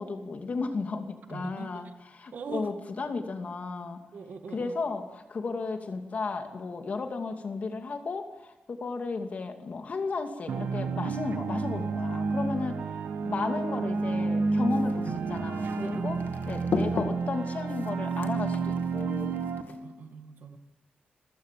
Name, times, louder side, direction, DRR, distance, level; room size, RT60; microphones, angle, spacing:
voice 1, 0.0-4.0 4.5-12.8 13.2-19.4, left 4 dB, 50° left, 6 dB, 2.6 m, -34 dB
voice 2, 1.3-1.8 2.3-2.7 4.1-4.7 15.8-16.2 19.7-20.6, right 5 dB, 70° right, 7 dB, 2.1 m, -41 dB
sound 1, 10.5-19.6, right 4 dB, 90° right, 2.0 m, -30 dB
sound 2, 14.7-19.8, left 4 dB, 75° left, 2.5 m, -37 dB
26.5 x 16.0 x 7.7 m, 1.1 s
wide cardioid pair, 130°, 3 cm